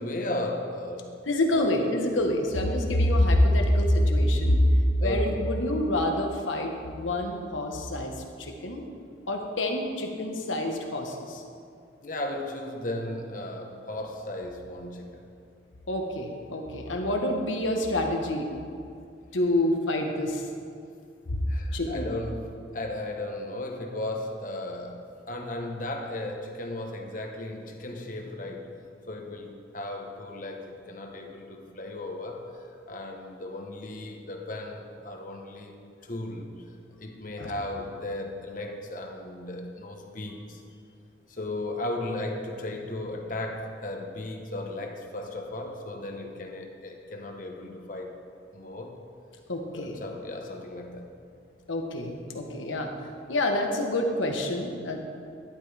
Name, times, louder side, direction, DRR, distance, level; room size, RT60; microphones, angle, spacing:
voice 1, 0.0-1.1 1.5-1.8 5.0-5.6 12.0-15.3 21.5-28.7 29.1-35.7 36.0-36.5 37.0-40.6 41.3-48.1 48.5-49.0 49.7-51.1, left 1 dB, 45° left, 2 dB, 1.1 m, -36 dB
voice 2, 1.3-4.6 5.0-8.1 8.4-8.8 9.3-11.4 15.9-18.5 19.3-20.4 21.3-21.4 21.7-22.1 37.4-37.5 49.5-49.9 51.7-52.9 53.3-55.0, left 1 dB, 85° left, 2 dB, 1.3 m, -26 dB
11.5 x 11.5 x 3.4 m, 2.5 s
head